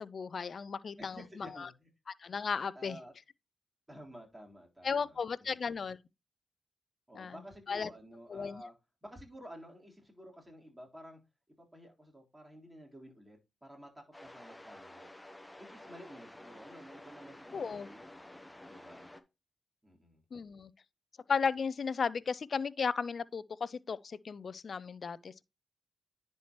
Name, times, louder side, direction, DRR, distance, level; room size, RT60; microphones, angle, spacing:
voice 1, 0.0-1.7 2.2-3.0 4.8-6.0 7.1-7.4 7.7-7.9 8.3-8.6 17.5-17.9 20.3-20.7 21.3-25.4, left 5 dB, 55° left, 0.4 m, -35 dB
voice 2, 1.0-1.9 2.7-3.1 3.9-5.6 7.1-8.7 9.0-11.2 11.6-15.1 15.6-18.1 18.7-19.1 19.8-20.2, equal, 15° right, 3.8 m, -52 dB
sound 1, 14.1-19.2, left 1 dB, 10° left, 0.9 m, -51 dB
10.0 x 4.4 x 3.0 m
supercardioid pair, 45°, 0 cm